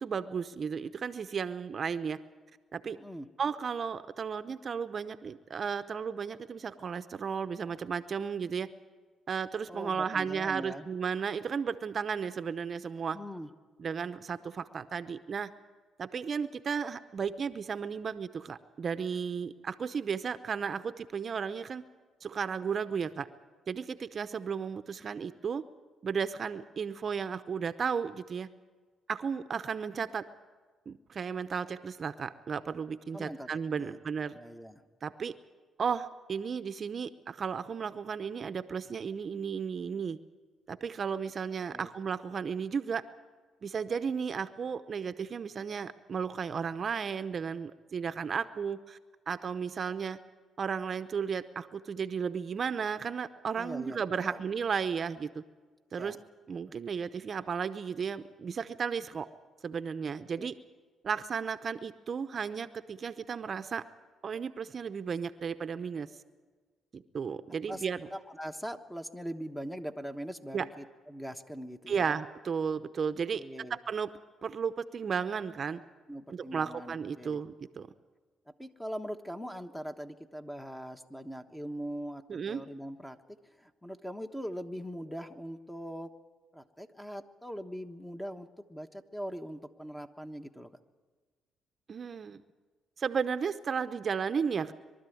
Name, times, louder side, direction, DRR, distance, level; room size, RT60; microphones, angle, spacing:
voice 1, 0.0-2.2 2.7-3.0 3.4-8.7 9.3-13.2 13.8-15.5 16.0-21.8 22.2-23.3 23.7-25.6 26.0-28.5 29.1-30.2 30.9-34.4 35.0-35.3 35.8-40.2 40.7-43.0 43.6-49.0 49.3-50.2 50.6-55.4 55.9-56.2 56.5-59.3 59.6-60.5 61.0-63.8 64.2-66.1 66.9-68.1 70.5-70.6 71.9-73.4 73.7-75.8 76.3-77.9 82.3-82.6 91.9-92.4 93.0-94.7, right 6 dB, 45° right, 11 dB, 0.8 m, -34 dB
voice 2, 2.9-3.3 9.7-10.9 13.1-13.5 33.1-33.5 33.8-34.0 34.3-34.8 41.7-41.9 53.6-54.0 54.2-54.4 56.0-56.2 60.4-60.5 67.5-67.8 68.1-72.2 73.3-73.8 76.1-77.4 78.6-83.2 83.6-86.1 86.5-90.7, equal, 5° left, 7 dB, 1.2 m, -41 dB
23.0 x 12.5 x 9.3 m, 1.4 s
cardioid pair, 90°, 0 cm